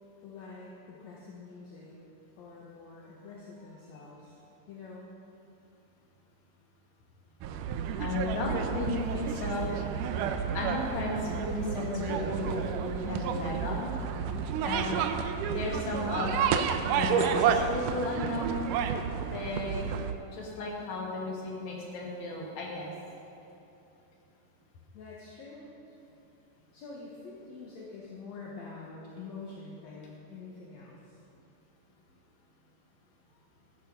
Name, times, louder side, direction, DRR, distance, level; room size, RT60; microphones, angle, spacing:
voice 1, 0.2-1.9 2.4-4.4 4.7-5.1 24.9-25.7 26.7-31.2, left 3 dB, 60° left, -4 dB, 2.4 m, -46 dB
sound 1, 7.4-20.1, right 7 dB, 85° right, 2.2 m, -31 dB
voice 2, 8.0-9.8 10.5-13.9 14.6-15.0 15.5-18.6 19.3-19.9 20.3-22.9, left 2 dB, 40° left, -3 dB, 2.8 m, -34 dB
15.0 x 10.5 x 5.4 m, 2.9 s
omnidirectional pair, 3.7 m